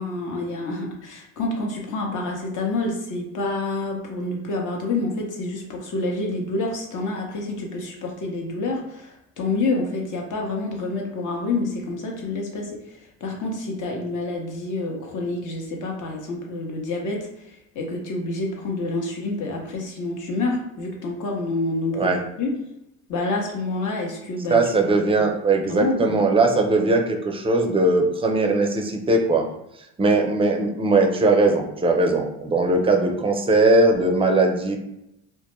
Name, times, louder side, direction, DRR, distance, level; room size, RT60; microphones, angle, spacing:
voice 1, 0.0-22.5 23.1-24.6 24.9-25.3 25.7-26.2, left 2 dB, 60° left, 0 dB, 0.8 m, -28 dB
voice 2, 24.5-29.5 30.0-34.8, right 2 dB, 15° right, 2 dB, 0.4 m, -20 dB
2.2 x 2.1 x 2.9 m, 0.86 s
supercardioid pair, 80°, 36 cm